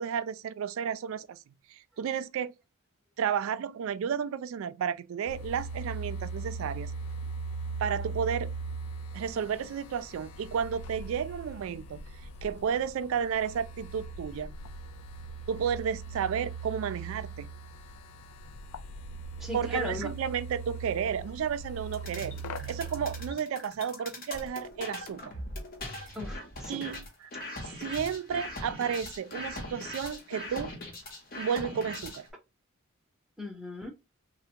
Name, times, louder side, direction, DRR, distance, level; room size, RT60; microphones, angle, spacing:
voice 1, 0.0-1.4 1.7-2.5 3.2-6.9 7.8-8.5 9.1-12.0 12.4-14.6 15.5-17.5 19.5-22.4 22.7-25.3 26.7-27.3 27.6-30.7 31.4-32.3, right 7 dB, 65° right, 0.3 m, -32 dB
sound 1, 5.3-23.3, right 4 dB, 90° left, 0.4 m, -40 dB
voice 2, 19.4-20.1 26.1-26.9 33.4-33.9, left 1 dB, ahead, 0.7 m, -37 dB
sound 2, 21.9-32.3, left 1 dB, 45° left, 0.8 m, -41 dB
3.3 x 2.1 x 2.7 m
head